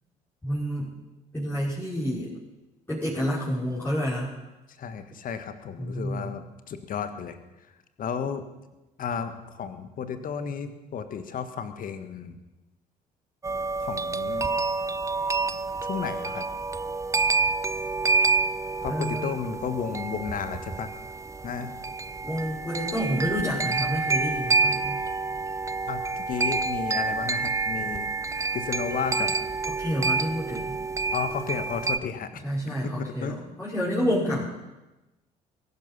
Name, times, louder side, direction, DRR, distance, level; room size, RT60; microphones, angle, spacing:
voice 1, 0.4-0.9 1.3-2.3 2.9-4.3 5.8-6.3 18.9-19.3 22.2-25.0 29.8-30.7 32.4-34.5, equal, 10° left, -10 dB, 5.5 m, -29 dB
voice 2, 4.8-7.4 8.0-8.4 9.0-12.4 13.8-14.5 15.8-16.5 18.8-20.9 21.4-21.8 25.9-28.1 28.5-29.4 31.1-33.4, left 7 dB, 45° left, 10 dB, 1.6 m, -33 dB
sound 1, 13.4-32.0, right 4 dB, 15° right, 0.6 m, -28 dB
22.0 x 11.5 x 5.6 m, 1.0 s
figure-of-eight pair, 50°, 19 cm